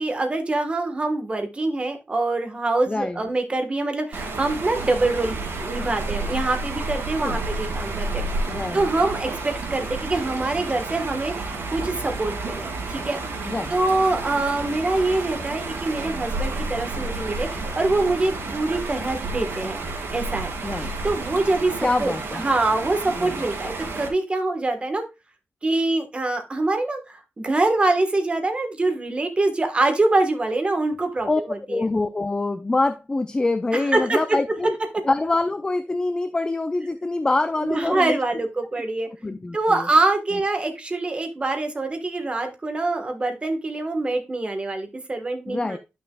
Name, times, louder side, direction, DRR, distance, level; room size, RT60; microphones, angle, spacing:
voice 1, 0.0-8.2 8.7-19.8 20.1-25.0 25.6-31.8 33.7-34.4 37.6-45.8, right 2 dB, 25° right, 1.2 m, -25 dB
voice 2, 2.9-3.2 7.2-7.5 8.5-8.8 13.4-13.8 20.6-20.9 21.8-22.4 23.2-23.3 31.3-31.4 31.7-34.7 35.0-38.2 39.2-39.9 45.5-45.8, left 2 dB, 20° left, 0.4 m, -25 dB
sound 1, 4.1-24.1, right 3 dB, 75° right, 2.5 m, -31 dB
11.0 x 5.9 x 2.2 m
wide cardioid pair, 150°, 4 cm